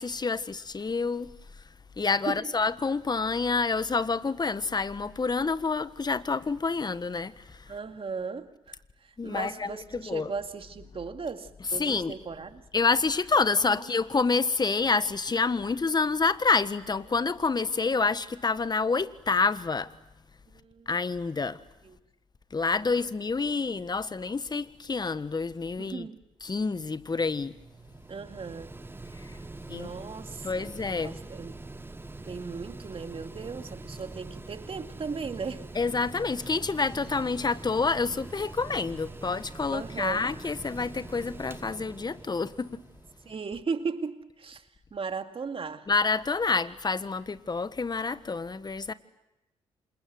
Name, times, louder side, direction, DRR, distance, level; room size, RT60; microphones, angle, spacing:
voice 1, 0.0-1.3 2.0-7.7 9.2-10.3 11.8-12.2 12.7-19.9 20.9-21.6 22.5-26.1 26.4-27.6 29.2-29.3 29.7-29.9 30.4-31.2 35.7-42.8 45.9-48.9, left 4 dB, 30° left, 1.4 m, -28 dB
voice 2, 7.7-12.6 13.6-13.9 20.5-20.9 21.8-22.0 22.9-23.1 25.8-26.2 28.1-28.8 29.7-30.7 31.0-31.5 32.3-35.7 39.7-40.3 43.2-45.9, right 5 dB, 40° right, 2.3 m, -37 dB
Mechanical fan, 27.1-43.4, right 2 dB, 15° right, 1.5 m, -44 dB
28.0 x 26.5 x 7.9 m
hypercardioid pair, 50°, 14 cm